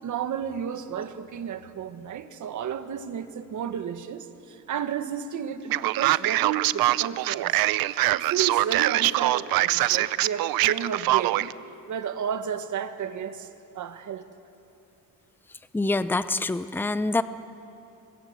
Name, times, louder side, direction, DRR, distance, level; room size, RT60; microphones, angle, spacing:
voice 1, 0.0-7.6 8.1-11.5 11.9-13.5 13.7-14.2, right 8 dB, 60° right, 9 dB, 1.6 m, -32 dB
Male speech man speaking, 5.7-11.5, right 16 dB, 90° right, 0.6 m, -23 dB
voice 2, 15.7-17.2, left 2 dB, 5° left, 12 dB, 0.6 m, -25 dB
27.5 x 23.0 x 8.2 m, 2.7 s
cardioid pair, 135°, 34 cm